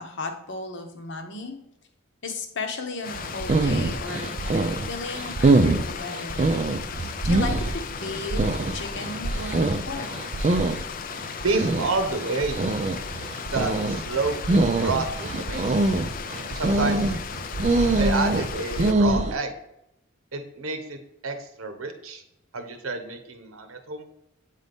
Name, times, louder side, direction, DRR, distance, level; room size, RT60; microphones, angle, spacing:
voice 1, 0.0-1.6 2.2-6.5 7.2-10.1, left 3 dB, 60° left, 5 dB, 0.9 m, -35 dB
Stream, 3.0-18.9, left 6 dB, 40° left, 0.4 m, -36 dB
sound 1, 3.1-19.4, right 2 dB, 35° right, 0.4 m, -24 dB
voice 2, 11.4-12.7 13.5-15.9 16.5-17.2 18.0-19.5 20.3-21.0 21.2-22.2 22.5-24.1, right 3 dB, 80° right, 7 dB, 0.9 m, -29 dB
8.3 x 4.0 x 3.4 m, 0.81 s
head